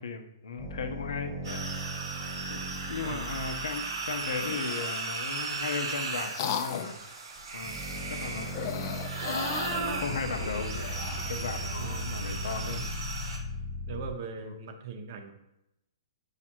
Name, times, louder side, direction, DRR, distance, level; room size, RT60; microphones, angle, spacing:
voice 1, 0.0-1.6 2.5-2.6 2.9-7.2 7.5-8.8 10.0-10.9 11.3-12.8 14.4-14.6, left 5 dB, 80° left, 7 dB, 0.6 m, -36 dB
sound 1, 0.6-4.7 7.4-14.1, equal, 5° right, 1.1 m, -38 dB
sound 2, 1.4-13.4, right 3 dB, 80° right, 0.9 m, -36 dB
voice 2, 3.0-3.4 11.8-12.3 12.6-12.8 13.9-15.3, right 5 dB, 45° right, 6 dB, 0.6 m, -40 dB
sound 3, 4.4-4.9 5.6-7.0 8.4-11.5, left 8 dB, 40° left, 0.3 m, -37 dB
5.1 x 2.4 x 4.3 m, 0.87 s
hypercardioid pair, 155°, 3 cm